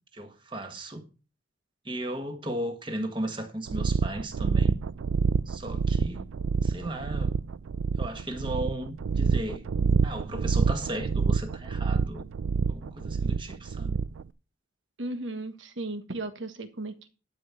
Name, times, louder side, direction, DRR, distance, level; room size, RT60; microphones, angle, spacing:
voice 1, 0.1-1.0 1.8-4.8 5.5-6.2 6.6-7.4 8.0-9.7 10.0-12.3 12.7-14.0, right 1 dB, 25° right, 1.5 m, -35 dB
sound 1, 3.7-14.2, right 5 dB, 85° right, 0.4 m, -27 dB
voice 2, 15.0-17.1, right 2 dB, 65° right, 1.4 m, -35 dB
12.0 x 5.2 x 5.8 m
head